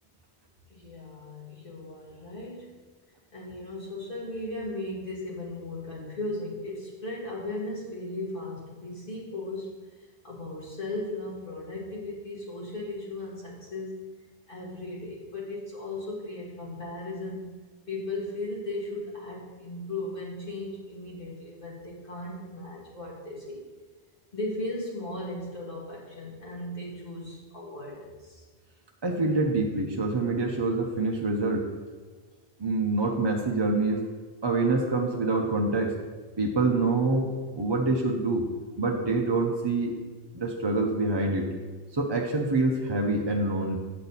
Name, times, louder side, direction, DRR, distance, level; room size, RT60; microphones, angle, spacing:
voice 1, 0.7-2.7 3.3-14.1 14.5-17.5 17.9-23.6 24.3-28.4, left 2 dB, 55° left, -6 dB, 2.4 m, -37 dB
voice 2, 29.0-31.7 32.6-34.1 34.4-36.0 36.4-38.5 38.8-39.9 40.3-41.5 41.9-43.8, right 3 dB, 30° right, 0 dB, 0.6 m, -26 dB
8.5 x 6.6 x 4.1 m, 1.3 s
omnidirectional pair, 1.1 m